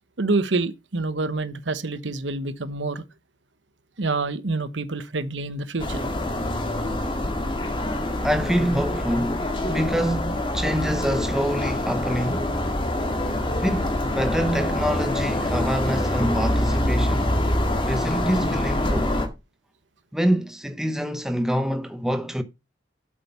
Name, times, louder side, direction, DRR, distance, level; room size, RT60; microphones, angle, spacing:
voice 1, 0.2-3.0 4.0-6.0, right 3 dB, 75° right, 1.1 m, -27 dB
sound 1, 5.8-19.3, left 1 dB, 30° left, 2.0 m, -25 dB
voice 2, 8.2-12.5 13.6-17.3 17.9-19.2 20.1-22.4, equal, 5° right, 0.8 m, -26 dB
8.2 x 7.6 x 5.5 m
head